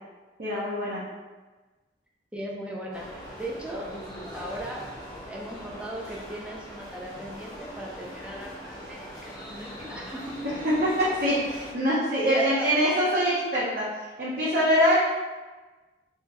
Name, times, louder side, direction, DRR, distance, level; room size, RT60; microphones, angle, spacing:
voice 1, 0.4-1.0 10.8-15.0, equal, 55° right, -9 dB, 0.9 m, -24 dB
voice 2, 2.3-3.1 3.4-3.9 4.3-4.8 5.3-10.4 12.2-12.9, equal, 5° right, -3 dB, 0.4 m, -37 dB
sound 1, 2.9-11.7, equal, 20° left, 0.8 m, -41 dB
3.5 x 3.3 x 3.0 m, 1.3 s
head